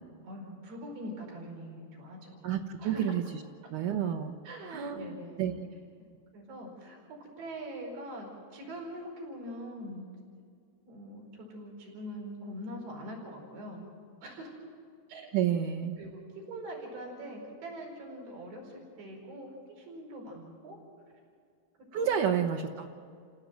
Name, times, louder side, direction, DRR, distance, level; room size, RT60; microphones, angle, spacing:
voice 1, 0.2-2.5 2.8-3.1 4.4-5.6 6.3-10.1 10.9-13.9 14.2-14.6 15.1-15.3 16.0-20.8 21.9-22.4, equal, 90° right, -1 dB, 6.7 m, -43 dB
voice 2, 2.4-3.4 3.7-4.4 4.6-5.5 15.3-16.0 21.9-22.9, right 9 dB, 65° right, 1 dB, 2.1 m, -30 dB
30.0 x 17.0 x 7.8 m, 2.2 s
omnidirectional pair, 4.6 m